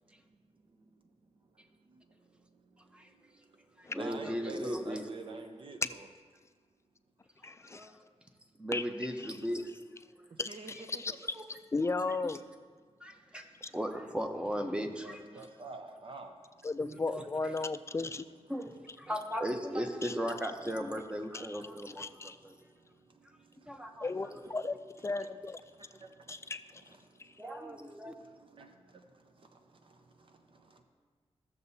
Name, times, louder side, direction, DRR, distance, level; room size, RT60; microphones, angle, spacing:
voice 1, 1.9-6.1 10.3-11.2 15.0-16.4 17.6-17.7 21.6-24.1 24.4-24.6 25.7-27.4 27.9-30.8, right 3 dB, 50° right, 5 dB, 0.8 m, -50 dB
voice 2, 3.8-5.1 7.7-7.9 8.6-9.7 11.3-11.4 13.0-15.5 16.8-17.6 18.5-22.6 23.7-24.4 27.4-28.1, equal, 10° right, 5 dB, 0.8 m, -37 dB
voice 3, 7.4-7.9 8.7-8.8 10.4-11.1 11.7-12.4 13.6-13.7 16.6-18.3 20.0-20.1 21.3-21.6 22.0-22.4 24.0-24.8 25.0-25.6 26.3-26.8 27.2-27.3, left 3 dB, 25° left, 11 dB, 0.3 m, -35 dB
15.0 x 6.8 x 2.7 m, 1.5 s
wide cardioid pair, 90°, 11 cm